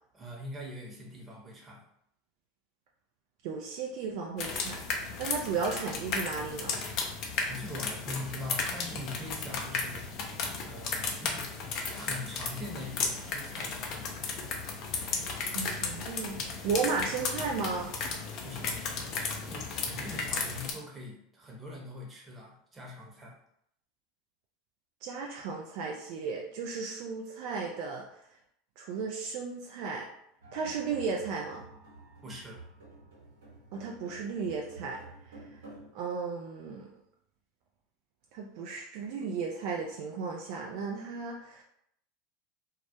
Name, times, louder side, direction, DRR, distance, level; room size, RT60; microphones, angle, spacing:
voice 1, 0.1-1.8 7.4-10.2 10.6-11.5 11.9-14.2 18.4-19.2 19.4-23.4 32.2-32.6, left 1 dB, 20° right, -2 dB, 0.8 m, -42 dB
voice 2, 3.4-4.8 5.2-6.8 15.5-17.9 25.0-28.0 28.8-30.1 30.5-31.6 33.7-35.0 35.9-36.9 38.3-41.6, right 5 dB, 60° right, 0 dB, 0.3 m, -34 dB
sound 1, 4.4-20.7, left 4 dB, 55° left, 0.5 m, -35 dB
sound 2, 30.4-35.9, right 2 dB, 80° right, 0.9 m, -50 dB
2.3 x 2.0 x 2.7 m, 0.73 s
hypercardioid pair, 80°, 0 cm